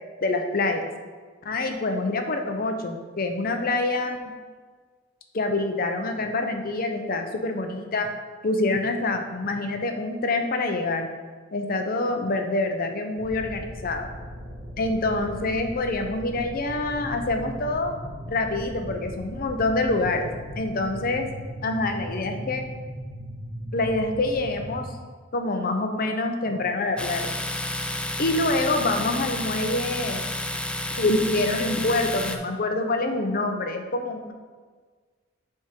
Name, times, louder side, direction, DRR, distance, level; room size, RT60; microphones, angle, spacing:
voice 1, 0.2-0.9 1.4-4.3 5.3-8.1 8.4-11.1 11.5-14.1 14.8-17.9 18.3-20.3 20.6-21.3 21.6-22.6 23.7-24.9 25.3-27.3 28.2-30.2 31.0-34.3, left 2 dB, 50° left, 5 dB, 0.7 m, -26 dB
sound 1, 13.2-24.9, equal, 65° right, 1.4 m, -38 dB
Domestic sounds home sounds, 27.0-32.4, left 1 dB, 5° left, 0.3 m, -30 dB
7.4 x 3.6 x 4.5 m, 1.5 s
head